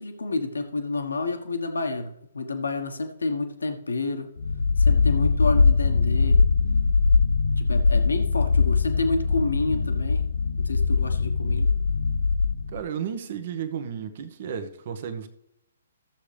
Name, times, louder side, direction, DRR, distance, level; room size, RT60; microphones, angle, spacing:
voice 1, 0.0-4.3 4.8-6.4 7.6-10.3 10.6-11.7, left 3 dB, 85° left, 1.3 m, -29 dB
sound 1, 4.4-12.8, left 4 dB, 70° left, 0.7 m, -21 dB
voice 2, 12.7-15.3, right 8 dB, 50° right, 1.0 m, -33 dB
14.5 x 7.1 x 3.4 m
hypercardioid pair, 135°, 0 cm